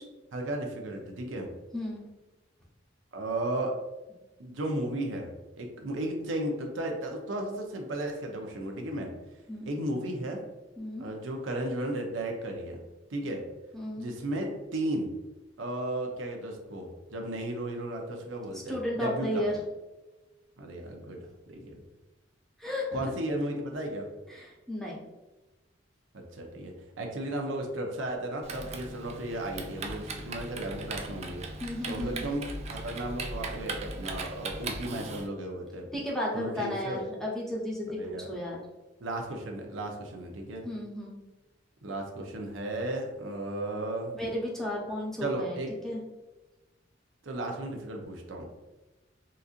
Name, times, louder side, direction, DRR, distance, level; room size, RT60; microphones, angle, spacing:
voice 1, 0.3-1.5 3.1-3.8 4.4-9.1 9.7-10.4 11.0-12.8 13.1-13.4 14.0-15.1 15.6-19.5 20.6-21.8 22.9-24.1 26.1-31.4 31.9-35.9 36.3-37.0 37.9-38.3 39.0-40.7 41.8-44.1 45.2-45.7 47.2-48.5, right 1 dB, 80° right, 2 dB, 0.6 m, -34 dB
voice 2, 13.7-14.1 18.5-19.5 22.6-23.0 24.3-25.0 31.6-32.1 35.9-38.6 40.6-41.2 44.1-45.6 45.8-46.0, left 1 dB, ahead, -4 dB, 0.7 m, -33 dB
Typing, 28.4-35.3, right 2 dB, 35° right, 0.4 m, -38 dB
4.0 x 2.6 x 2.4 m, 1.1 s
head